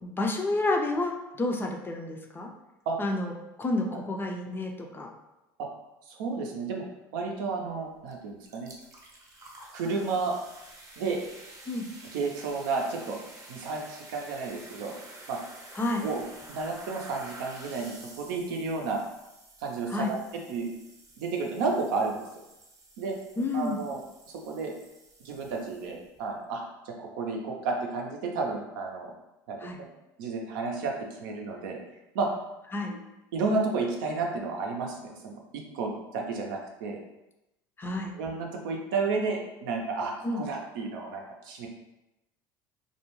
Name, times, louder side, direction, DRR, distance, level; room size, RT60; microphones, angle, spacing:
voice 1, 0.0-2.5 3.0-3.3 3.6-5.1 11.7-11.9 15.7-16.1 19.9-20.1 23.4-23.8 29.6-29.8 32.7-33.0 37.8-38.2 40.2-40.4, left 2 dB, 20° left, 2 dB, 0.4 m, -30 dB
voice 2, 6.1-6.8 7.1-8.7 9.7-10.4 11.0-11.2 12.1-13.2 13.5-14.9 15.3-15.4 16.0-16.2 16.5-19.0 19.6-20.2 20.5-20.8 21.2-22.3 23.0-23.1 23.5-24.0 24.5-24.7 25.2-29.1 29.5-29.9 30.2-30.9 31.2-31.8 32.1-32.3 32.9-33.0 33.3-37.0 38.1-41.7, right 4 dB, 80° right, 1 dB, 0.5 m, -32 dB
verre de cidre, 8.1-8.2 8.4-26.2, right 2 dB, 30° right, 0.7 m, -50 dB
2.3 x 2.1 x 3.0 m, 0.95 s
hypercardioid pair, 85°, 11 cm